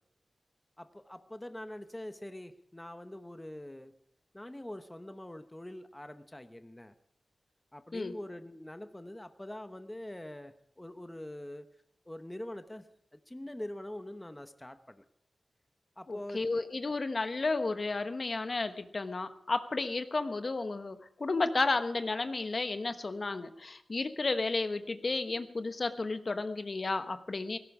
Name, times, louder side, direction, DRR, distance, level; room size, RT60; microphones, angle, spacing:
voice 1, 0.8-3.9 4.3-6.9 7.7-11.7 12.1-12.8 13.1-15.0 16.0-16.4, left 1 dB, 15° left, 9 dB, 0.9 m, -44 dB
voice 2, 16.1-27.6, left 3 dB, 50° left, 10 dB, 1.0 m, -32 dB
17.5 x 16.5 x 4.9 m, 0.70 s
wide cardioid pair, 90°, 0 cm